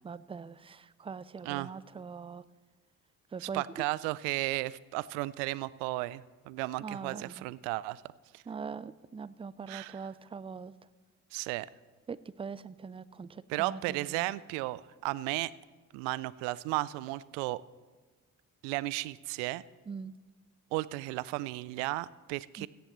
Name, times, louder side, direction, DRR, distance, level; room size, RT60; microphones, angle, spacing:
voice 1, 0.0-2.4 3.3-3.8 6.8-7.5 8.5-10.7 12.1-14.3 19.9-20.1 22.6-22.7, right 5 dB, 15° right, 18 dB, 0.4 m, -42 dB
voice 2, 3.4-8.0 8.3-8.4 9.7-9.9 11.3-11.7 13.5-15.5 15.9-17.6 18.6-19.6 20.7-22.7, right 19 dB, 75° right, 20 dB, 0.5 m, -34 dB
17.0 x 13.5 x 3.1 m, 1.3 s
hypercardioid pair, 45°, 44 cm